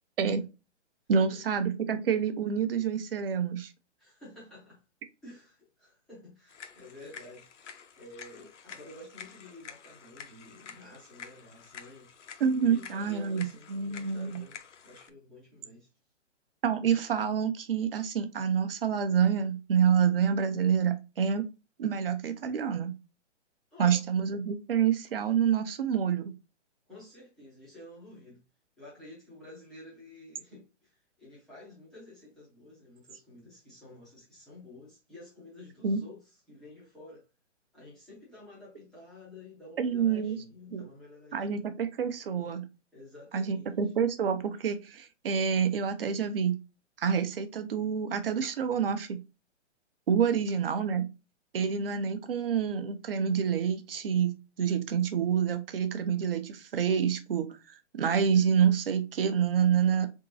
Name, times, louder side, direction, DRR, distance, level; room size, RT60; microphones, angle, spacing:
voice 1, 1.1-3.7 12.4-14.4 16.6-21.4 21.8-22.9 23.8-26.3 35.8-36.0 39.8-40.4 40.7-40.8 41.3-42.7 43.3-46.6 47.0-49.2 50.1-51.1 51.5-60.1, right 7 dB, 50° right, 0.8 m, -27 dB
voice 2, 4.0-4.8 5.2-7.7 8.0-12.1 12.6-15.9 23.7-24.0 26.9-28.4 28.8-36.2 36.5-37.2 37.7-41.7 42.9-43.8 50.3-50.5, left 1 dB, ahead, 0.5 m, -51 dB
sound 1, 6.5-15.1, left 7 dB, 75° left, 0.8 m, -49 dB
4.0 x 3.7 x 2.6 m
hypercardioid pair, 160°, 36 cm